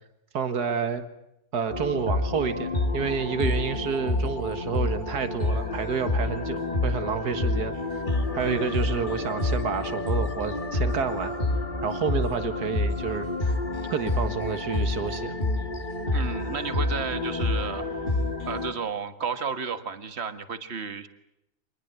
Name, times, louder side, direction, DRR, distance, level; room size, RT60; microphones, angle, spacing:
voice 1, 0.3-1.0 1.5-8.0 8.3-11.3 11.8-13.5 13.9-15.4, right 6 dB, 75° right, 9 dB, 2.2 m, -29 dB
sound 1, 1.7-18.7, left 2 dB, 30° left, 2.3 m, -28 dB
voice 2, 16.1-17.9 18.5-21.1, right 6 dB, 40° right, 10 dB, 1.8 m, -32 dB
26.0 x 20.5 x 8.1 m, 0.85 s
omnidirectional pair, 1.7 m